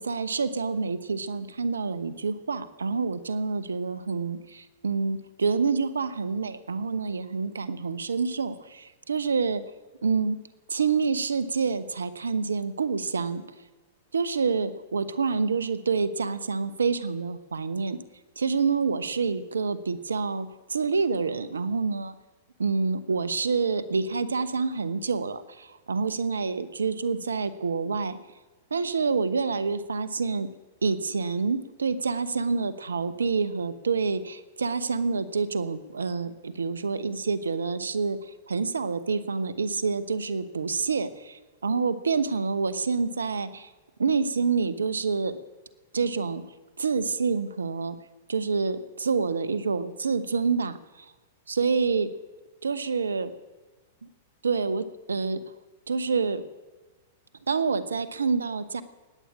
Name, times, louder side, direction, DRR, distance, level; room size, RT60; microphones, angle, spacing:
voice 1, 0.0-9.6 10.0-10.4 10.7-13.4 14.1-18.0 18.4-22.1 22.6-28.2 28.7-30.5 30.8-43.7 44.0-45.4 45.9-46.4 46.8-48.0 48.3-51.0 51.5-52.1 52.6-53.3 54.4-55.4 55.9-56.4 57.5-58.8, right 4 dB, 85° right, 14 dB, 0.9 m, -27 dB
20.0 x 8.7 x 7.3 m, 1.2 s
hypercardioid pair, 110°, 0 cm